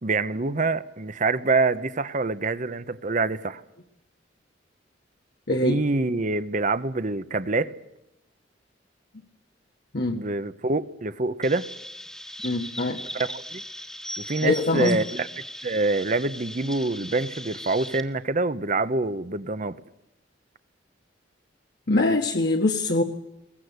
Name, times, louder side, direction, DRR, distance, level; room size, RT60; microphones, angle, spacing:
voice 1, 0.0-3.6 5.6-7.7 10.1-11.7 13.1-13.6 14.2-15.3 15.6-19.8, right 3 dB, 40° right, 0.8 m, -26 dB
voice 2, 5.5-5.8 9.9-10.2 12.4-13.0 14.4-15.0 21.9-23.0, left 2 dB, 60° left, 1.5 m, -23 dB
Chirp tweet, 11.4-18.0, left 1 dB, 5° left, 1.5 m, -38 dB
22.0 x 20.0 x 8.1 m
head